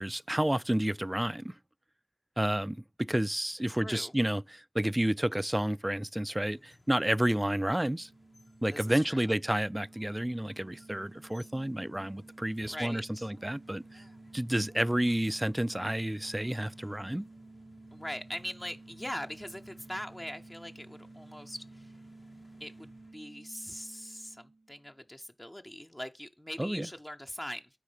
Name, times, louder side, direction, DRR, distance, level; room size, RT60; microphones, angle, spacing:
voice 1, 0.0-1.5 2.4-8.1 8.6-14.0 14.3-17.2 26.6-26.9, right 1 dB, 20° right, 0.3 m, -30 dB
voice 2, 3.7-4.1 8.7-9.0 12.6-13.3 17.9-21.9 22.6-27.7, equal, 20° left, 0.6 m, -41 dB
sound 1, 6.4-23.1, left 1 dB, 65° left, 1.5 m, -60 dB
sound 2, 7.6-25.1, right 3 dB, 65° right, 0.6 m, -53 dB
9.4 x 3.5 x 5.0 m
wide cardioid pair, 45°, 0 cm